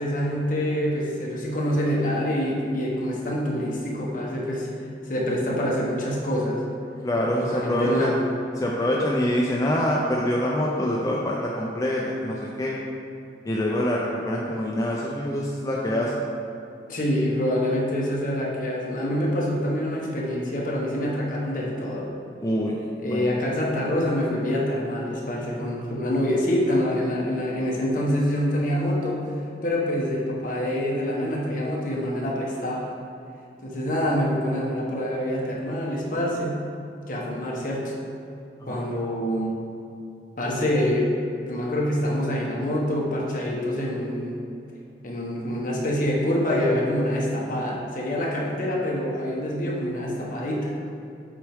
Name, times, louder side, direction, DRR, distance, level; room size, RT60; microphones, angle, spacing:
voice 1, 0.0-4.7 5.1-6.6 7.5-8.2 16.9-22.1 23.0-29.2 29.6-32.9 33.6-36.6 37.1-38.0 38.7-39.6 40.4-41.1 41.4-44.4 45.0-50.7, equal, 50° left, -3 dB, 1.1 m, -26 dB
voice 2, 7.0-8.1 8.6-12.8 13.5-16.1 22.4-23.3 38.6-38.8, left 1 dB, 20° left, -3 dB, 0.4 m, -25 dB
7.4 x 4.5 x 3.5 m, 2.7 s
head